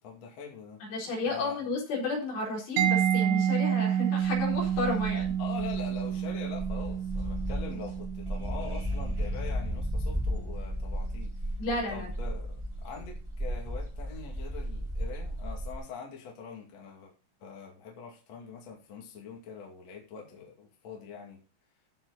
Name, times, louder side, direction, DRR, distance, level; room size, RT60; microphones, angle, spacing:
voice 1, 0.0-0.8 1.3-1.6 5.4-11.6 11.9-17.1 17.4-21.4, left 5 dB, 45° left, 2.8 m, -44 dB
voice 2, 0.9-5.3 11.6-12.1, left 2 dB, 60° left, 6.0 m, -32 dB
Mallet percussion, 2.8-10.3, right 9 dB, 80° right, 3.5 m, -30 dB
sound 1, 4.2-15.8, equal, 5° right, 3.4 m, -35 dB
15.0 x 6.2 x 4.0 m
omnidirectional pair, 5.6 m